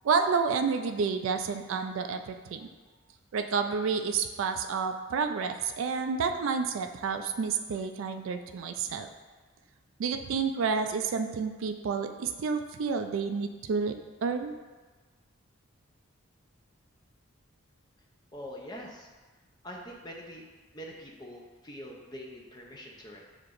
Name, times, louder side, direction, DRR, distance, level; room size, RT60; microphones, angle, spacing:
voice 1, 0.0-2.6 3.3-9.1 10.0-14.0 14.2-14.5, right 5 dB, 70° right, 7 dB, 0.3 m, -30 dB
voice 2, 18.3-19.1 19.6-20.4 20.7-23.2, equal, 20° left, -1 dB, 0.5 m, -44 dB
6.6 x 2.9 x 2.5 m, 1.3 s
head